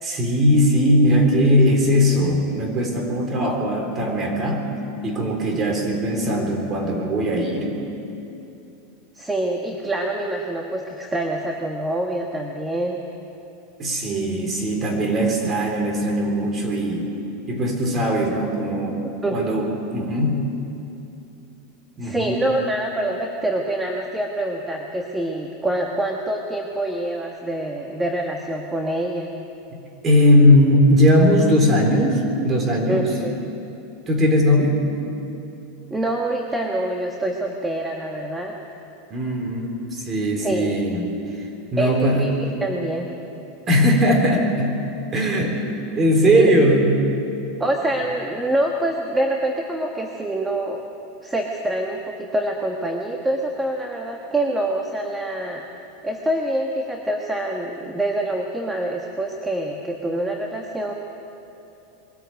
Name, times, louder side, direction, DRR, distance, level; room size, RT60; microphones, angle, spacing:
voice 1, 0.0-4.7 5.0-7.7 13.8-17.1 17.5-19.0 19.3-20.4 22.0-22.4 29.7-29.8 30.0-33.1 34.1-34.8 39.1-42.2 43.7-44.8 45.1-45.6 46.0-46.9, equal, 25° right, 2 dB, 3.8 m, -19 dB
voice 2, 9.1-13.0 19.2-19.4 22.0-29.3 32.9-33.4 35.9-38.6 40.4-40.8 41.8-43.1 46.4-46.6 47.6-50.8 51.2-55.6 56.0-60.9, right 1 dB, 10° right, 1 dB, 1.4 m, -25 dB
22.0 x 13.5 x 9.2 m, 2.9 s
supercardioid pair, 135°, 0 cm